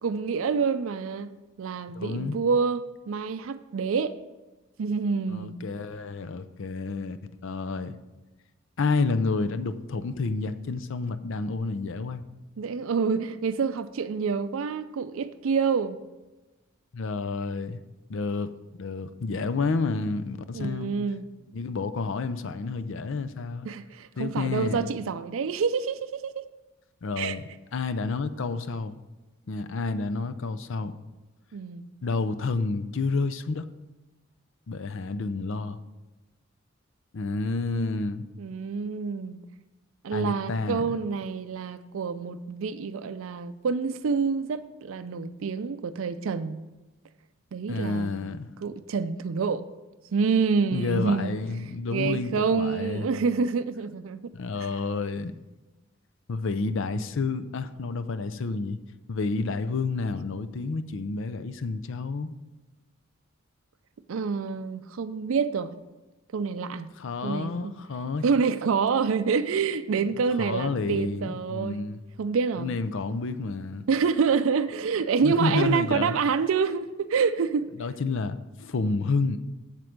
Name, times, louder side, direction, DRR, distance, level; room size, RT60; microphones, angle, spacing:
voice 1, 0.0-1.3 1.6-4.1 4.8-5.6 12.6-16.0 20.5-21.2 23.6-26.4 27.2-27.4 31.5-31.9 38.4-39.4 40.0-46.6 47.5-48.2 48.6-49.6 50.1-51.4 51.9-54.3 64.1-65.8 66.3-66.9 67.2-67.7 68.2-71.8 72.2-72.7 73.9-77.7, right 5 dB, 70° right, 0.4 m, -27 dB
voice 2, 1.9-2.4 5.3-7.2 7.4-8.0 8.8-12.2 16.9-17.8 18.1-18.5 18.8-20.9 21.5-23.7 24.2-24.9 27.0-27.4 27.7-29.0 29.5-30.9 32.0-33.6 34.7-35.8 37.1-38.3 40.1-41.0 47.7-48.5 50.7-53.1 54.3-55.4 56.3-58.8 59.1-62.3 67.0-68.2 70.4-72.0 72.6-73.8 75.2-76.2 77.8-79.4, left 3 dB, 65° left, 0.5 m, -30 dB
7.7 x 7.4 x 5.2 m
head